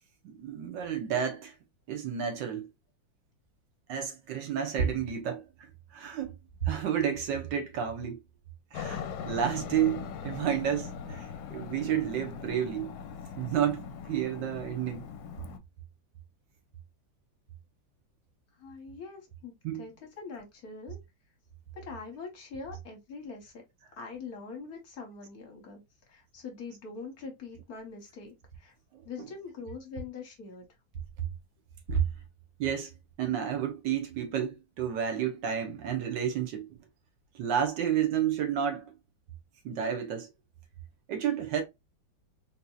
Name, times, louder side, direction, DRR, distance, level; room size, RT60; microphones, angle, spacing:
voice 1, 0.2-1.5 1.9-2.7 3.9-6.4 6.6-8.2 8.7-12.9 13.4-15.1 19.6-19.9 28.9-29.3 31.9-32.0 32.6-32.9 33.2-36.8 37.3-38.9 39.6-40.3 41.1-41.6, right 9 dB, 75° right, 1.4 m, -31 dB
Aircraft, 8.7-15.6, left 7 dB, 75° left, 1.2 m, -40 dB
voice 2, 18.6-21.0 21.7-23.6 24.0-25.8 26.1-28.7 29.0-30.7, left 4 dB, 60° left, 1.3 m, -43 dB
4.0 x 2.7 x 2.3 m
omnidirectional pair, 2.1 m